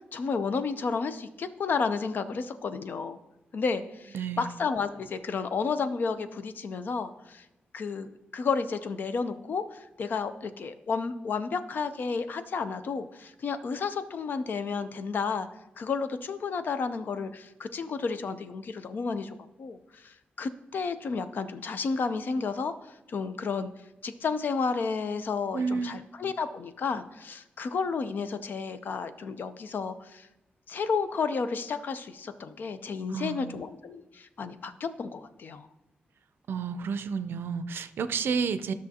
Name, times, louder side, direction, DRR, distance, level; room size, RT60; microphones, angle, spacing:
voice 1, 0.1-3.2 3.5-7.4 7.7-15.5 15.8-22.7 23.1-23.7 24.0-30.3 30.7-35.7, left 5 dB, 60° left, 11 dB, 0.5 m, -32 dB
voice 2, 4.1-4.5 25.5-26.1 33.1-33.6 36.5-38.7, right 5 dB, 80° right, 12 dB, 0.4 m, -31 dB
13.0 x 6.1 x 2.8 m, 0.97 s
wide cardioid pair, 170°, 4 cm